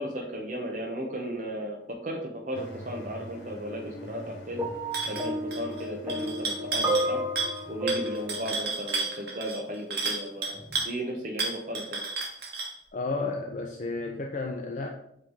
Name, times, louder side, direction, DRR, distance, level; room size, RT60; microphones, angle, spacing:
voice 1, 0.0-4.6 5.0-7.2 7.7-12.0, equal, 45° right, 0 dB, 0.8 m, -35 dB
sound 1, 2.5-8.5, left 2 dB, 80° left, 1.3 m, -44 dB
sound 2, 4.6-9.7 10.6-10.8, right 1 dB, 15° right, 0.8 m, -32 dB
sound 3, 4.9-5.3 5.5-5.8 6.1-7.1 7.4-7.6 7.9-10.9 11.4-12.7, right 3 dB, 65° right, 1.4 m, -31 dB
voice 2, 12.9-14.9, left 3 dB, 45° left, 2 dB, 0.5 m, -32 dB
7.9 x 3.3 x 3.9 m, 0.75 s
head